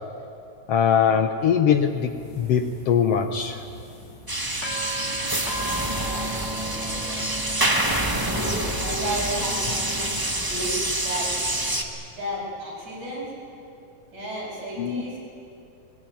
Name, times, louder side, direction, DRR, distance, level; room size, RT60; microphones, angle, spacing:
voice 1, 0.7-2.1 2.4-3.6 14.8-15.0, left 7 dB, 70° left, 7 dB, 1.6 m, -21 dB
sound 1, 1.8-10.2, right 1 dB, 45° left, 3.8 m, -37 dB
sound 2, 4.3-11.8, right 1 dB, 25° right, 0.4 m, -27 dB
voice 2, 5.6-7.2 8.2-11.3 12.1-13.3 14.1-15.2, equal, 70° right, -5 dB, 9.3 m, -33 dB
21.5 x 21.0 x 9.3 m, 2.6 s
omnidirectional pair, 3.4 m